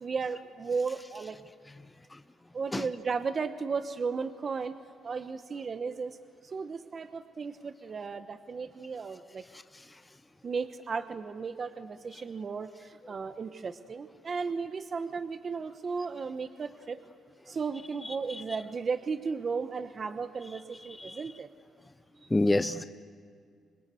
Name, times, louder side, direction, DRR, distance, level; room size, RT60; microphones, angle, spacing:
voice 1, 0.0-1.4 2.5-4.7 5.0-6.2 6.4-9.4 10.4-17.0 17.5-21.5, right 5 dB, 40° right, 10 dB, 1.1 m, -35 dB
voice 2, 22.3-22.8, left 2 dB, 15° left, 11 dB, 0.7 m, -26 dB
26.5 x 21.0 x 8.2 m, 2.1 s
cardioid pair, 90°, 0 cm